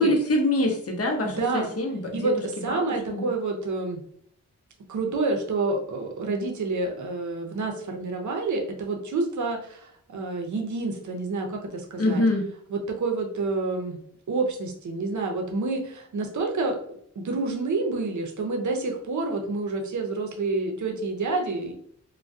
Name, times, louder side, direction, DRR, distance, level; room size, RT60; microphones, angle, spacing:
voice 1, 0.0-2.3 2.7-2.8 3.1-3.3 12.0-12.4, left 1 dB, 45° left, 1 dB, 0.7 m, -24 dB
voice 2, 1.2-1.7 2.1-4.0 4.9-12.2 12.7-14.0 14.3-16.8 17.2-21.7, right 3 dB, 60° right, 2 dB, 0.6 m, -28 dB
2.2 x 2.2 x 2.5 m, 0.64 s
cardioid pair, 65°, 33 cm